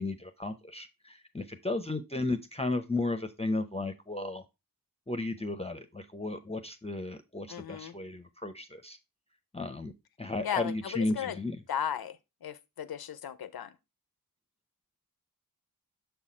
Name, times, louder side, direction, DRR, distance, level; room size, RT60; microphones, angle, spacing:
voice 1, 0.0-4.4 5.1-9.0 9.5-9.9 10.2-11.6, left 2 dB, 15° left, 0.6 m, -34 dB
voice 2, 7.5-7.9 10.4-11.4 11.7-13.7, left 9 dB, 90° left, 0.5 m, -36 dB
6.8 x 4.2 x 4.2 m
wide cardioid pair, 70°, 36 cm